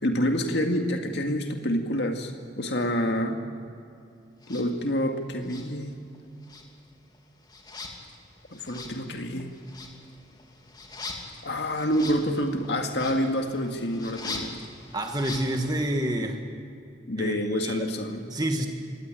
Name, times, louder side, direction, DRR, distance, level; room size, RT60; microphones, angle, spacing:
voice 1, 0.0-3.4 4.5-5.9 8.5-9.5 11.4-14.6 17.1-18.2, equal, 70° left, 4 dB, 2.0 m, -27 dB
sound 1, 4.4-4.7 5.4-6.2 6.4-15.9, left 3 dB, 20° left, 2.7 m, -42 dB
voice 2, 14.9-16.4 17.2-17.4 17.6-17.9 18.3-18.7, right 1 dB, 20° right, 4 dB, 1.6 m, -28 dB
25.0 x 18.5 x 9.1 m, 2.6 s
head